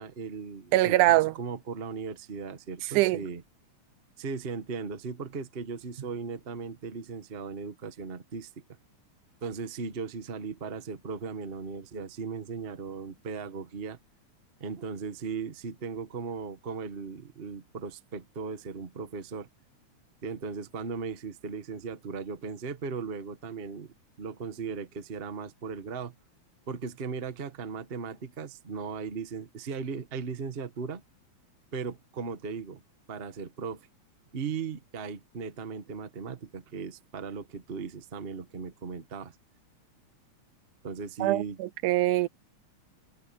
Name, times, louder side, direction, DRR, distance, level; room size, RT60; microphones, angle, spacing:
voice 1, 0.0-3.4 4.2-8.5 9.4-14.0 14.6-19.5 20.2-26.2 26.7-31.0 31.7-32.8 33.1-33.9 34.3-39.3 40.8-41.6, right 5 dB, 40° right, 0.8 m, -37 dB
voice 2, 0.7-1.3 2.9-3.2 41.2-42.3, right 17 dB, 90° right, 2.2 m, -23 dB
omnidirectional pair, 3.5 m